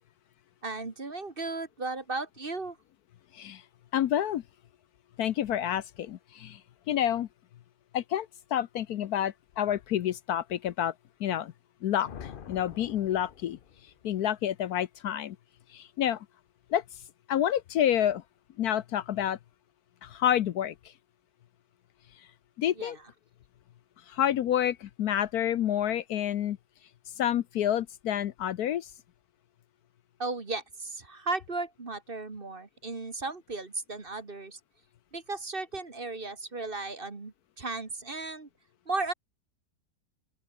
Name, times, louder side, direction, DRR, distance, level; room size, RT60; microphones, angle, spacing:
voice 1, 0.6-2.8 22.8-23.0 30.2-34.6 35.1-38.5 38.9-39.1, right 3 dB, 35° right, 2.0 m, -35 dB
voice 2, 3.9-4.4 5.2-6.6 6.9-7.3 7.9-10.9 11.2-11.5 11.8-13.6 14.0-15.4 15.7-16.3 16.7-16.8 17.3-18.2 18.6-19.4 20.0-20.9 22.2-22.3 22.6-23.0 24.1-26.6 27.2-28.9, left 10 dB, 70° left, 1.2 m, -29 dB
sound 1, 12.0-14.0, left 8 dB, 45° left, 0.7 m, -46 dB
open air
omnidirectional pair, 1.8 m